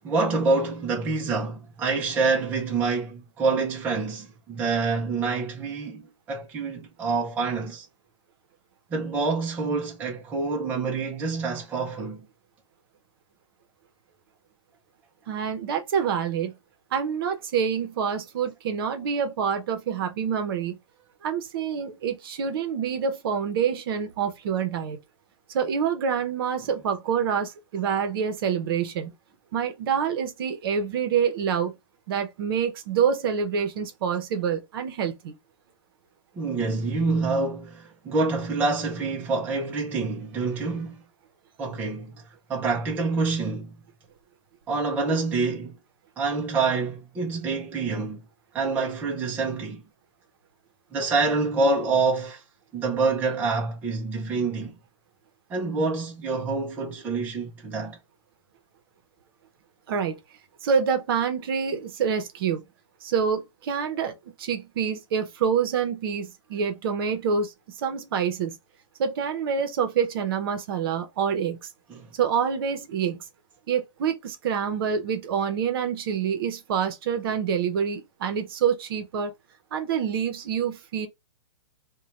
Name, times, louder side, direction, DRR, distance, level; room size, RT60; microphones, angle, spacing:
voice 1, 0.0-7.9 8.9-12.2 36.4-41.0 41.6-43.7 44.7-45.8 46.2-48.2 48.5-49.8 50.9-52.4 52.7-54.8 55.5-58.0 71.9-72.1, right 3 dB, 10° right, 0.4 m, -27 dB
voice 2, 15.3-16.5 16.9-20.8 21.2-25.0 25.5-29.1 29.5-31.7 32.1-35.3 59.9-60.2 60.6-62.6 63.0-67.5 67.8-68.6 69.0-71.7 72.1-73.2 73.7-79.3 79.7-81.1, right 7 dB, 45° right, 0.7 m, -26 dB
2.6 x 2.2 x 3.1 m
hypercardioid pair, 155°, 16 cm